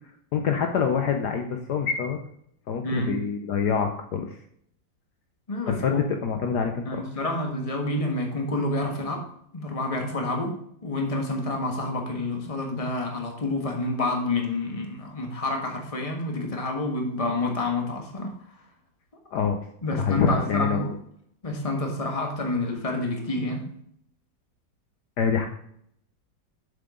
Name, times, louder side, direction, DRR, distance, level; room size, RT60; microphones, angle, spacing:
voice 1, 0.3-2.2 2.7-4.4 5.7-7.0 19.3-19.6 19.9-20.9 25.2-25.5, left 6 dB, 65° left, 4 dB, 1.3 m, -26 dB
voice 2, 2.8-3.2 5.5-6.0 6.8-9.3 9.5-18.3 19.4-19.5 19.8-20.9 21.4-23.7, left 2 dB, 20° left, 2 dB, 1.4 m, -28 dB
7.5 x 6.8 x 3.7 m, 0.69 s
omnidirectional pair, 2.1 m